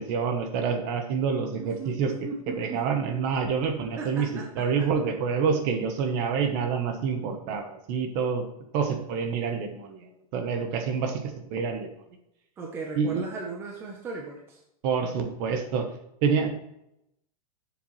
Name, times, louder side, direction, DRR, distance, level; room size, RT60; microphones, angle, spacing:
voice 1, 0.0-2.1 2.6-4.3 4.6-8.4 8.7-11.2 11.5-11.9 13.0-13.2 14.8-15.8 16.2-16.5, right 6 dB, 35° right, 6 dB, 1.1 m, -27 dB
voice 2, 1.6-2.8 4.0-4.9 12.6-14.6, right 3 dB, 10° right, 0 dB, 0.8 m, -37 dB
11.0 x 7.2 x 3.2 m, 0.81 s
supercardioid pair, 180°, 19 cm